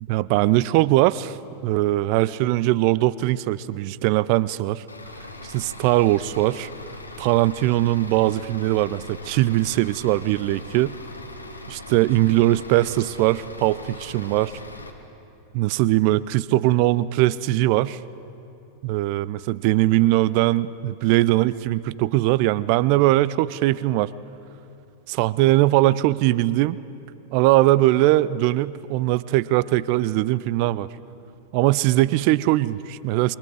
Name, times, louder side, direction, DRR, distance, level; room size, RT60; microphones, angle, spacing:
voice 1, 0.1-1.4 1.6-4.8 5.4-6.7 7.2-10.9 11.7-14.5 15.5-18.0 18.8-24.1 25.1-26.8 27.3-30.9 31.5-33.3, right 16 dB, 45° right, 20 dB, 0.5 m, -20 dB
Bus / Idling, 4.9-14.9, left 2 dB, 85° left, 1.5 m, -40 dB
27.5 x 23.0 x 4.9 m, 2.7 s
figure-of-eight pair, 90°, 0 cm